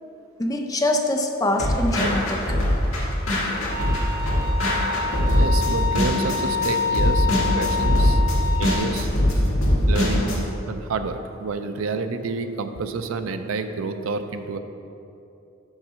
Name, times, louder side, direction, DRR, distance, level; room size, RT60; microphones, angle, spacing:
voice 1, 0.4-2.6, left 1 dB, 15° left, 3 dB, 0.5 m, -24 dB
sound 1, 1.6-10.4, left 1 dB, 75° left, 1.7 m, -22 dB
Bowed string instrument, 3.7-8.8, left 5 dB, 45° right, 0.8 m, -27 dB
voice 2, 5.4-7.3 7.5-8.2 8.6-9.1 9.9-14.6, right 4 dB, 80° right, 8 dB, 0.5 m, -29 dB
5.9 x 5.6 x 5.6 m, 2.8 s
head